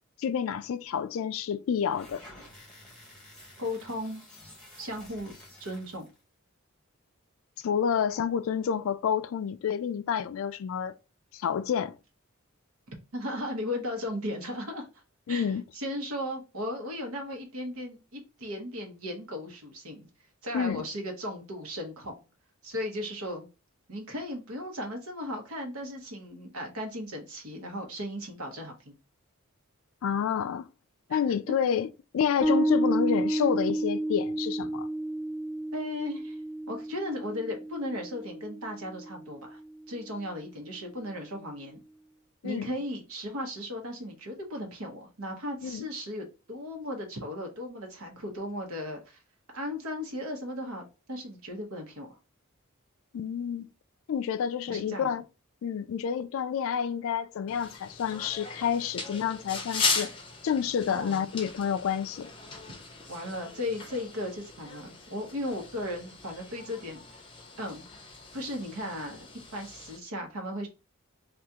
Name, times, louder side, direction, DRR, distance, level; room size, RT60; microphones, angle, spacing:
voice 1, 0.2-2.2 7.6-10.9 11.3-12.0 15.3-15.6 20.5-20.8 30.0-30.7 31.1-31.9 32.1-34.9 42.4-42.7 45.6-45.8 53.1-53.7 54.1-55.2 55.6-60.1 60.4-62.3, left 7 dB, 65° left, 0.3 m, -29 dB
sound 1, 1.8-6.2, left 1 dB, 5° left, 1.2 m, -51 dB
voice 2, 3.6-4.2 4.8-5.3 5.6-6.1 12.9-15.0 15.3-20.1 20.4-22.3 22.6-23.5 23.9-29.0 31.1-31.2 35.7-36.4 36.7-39.6 39.9-41.8 42.4-49.2 49.5-52.1 54.7-55.1 60.9-61.3 62.5-62.6 63.1-67.3 67.6-67.8 68.3-69.3 69.5-70.7, left 1 dB, 80° right, 1.0 m, -36 dB
Bass guitar, 32.4-39.6, right 1 dB, 20° right, 0.7 m, -31 dB
sound 2, 57.5-70.0, left 4 dB, 25° left, 0.6 m, -38 dB
2.8 x 2.4 x 3.5 m
head